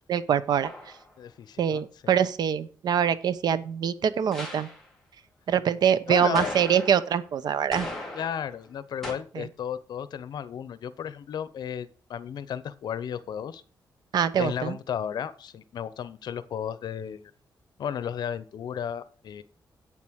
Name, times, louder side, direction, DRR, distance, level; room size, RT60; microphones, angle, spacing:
voice 1, 0.1-0.7 1.6-4.7 5.5-7.9 9.3-9.4 14.1-14.8, right 8 dB, 70° right, 14 dB, 0.8 m, -24 dB
sound 1, 0.6-1.1 4.3-4.9 6.3-7.2 7.7-8.6 9.0-9.1, left 1 dB, 5° left, 3.0 m, -37 dB
voice 2, 1.2-2.2 6.1-6.6 8.1-13.6 14.4-17.3 17.8-19.4, left 8 dB, 75° left, 15 dB, 0.9 m, -34 dB
8.5 x 7.4 x 6.4 m, 0.41 s
wide cardioid pair, 155°, 7 cm